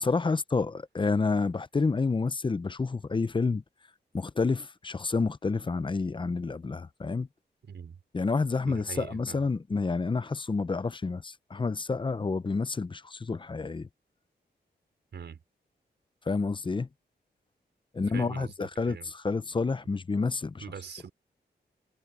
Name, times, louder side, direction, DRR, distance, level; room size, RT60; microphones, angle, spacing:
voice 1, 0.0-3.6 4.1-7.3 8.1-13.9 16.3-16.9 17.9-20.6, left 4 dB, 30° left, 0.7 m, -29 dB
voice 2, 7.6-8.0 8.7-9.4 15.1-15.4 18.1-19.1 20.6-21.1, right 7 dB, 80° right, 5.4 m, -42 dB
wide cardioid pair, 105°, 18 cm